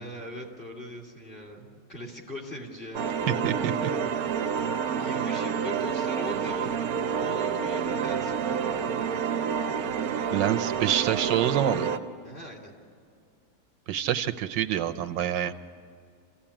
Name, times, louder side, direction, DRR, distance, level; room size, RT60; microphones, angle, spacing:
voice 1, 0.0-3.1 5.0-6.8 7.2-8.5 12.2-12.7, left 1 dB, 30° left, 0 dB, 3.3 m, -41 dB
sound 1, 2.9-12.0, right 7 dB, 60° right, 1.1 m, -28 dB
voice 2, 3.4-3.9 10.3-11.9 13.9-15.5, right 10 dB, 80° right, 10 dB, 1.4 m, -26 dB
26.5 x 15.5 x 8.7 m, 2.3 s
omnidirectional pair, 2.0 m